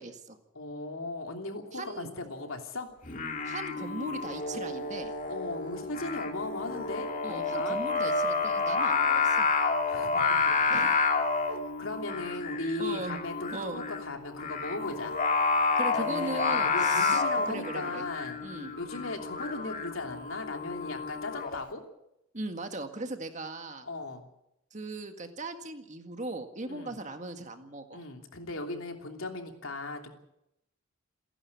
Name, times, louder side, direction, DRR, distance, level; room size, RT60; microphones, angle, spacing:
voice 1, 0.0-0.4 1.7-2.1 3.4-5.1 7.2-9.5 10.7-10.9 12.8-13.2 13.5-13.8 15.8-18.1 18.4-18.7 22.3-23.9 24.7-28.0, right 2 dB, 35° right, 6 dB, 1.8 m, -38 dB
voice 2, 0.5-2.9 5.3-7.8 9.9-10.6 11.5-15.2 15.9-18.4 18.8-21.8 23.8-24.3 26.7-26.9 27.9-30.1, left 2 dB, 80° left, 3 dB, 3.0 m, -37 dB
Singing, 3.0-21.5, left 4 dB, 40° left, 2.3 m, -30 dB
28.5 x 11.0 x 8.5 m, 0.85 s
head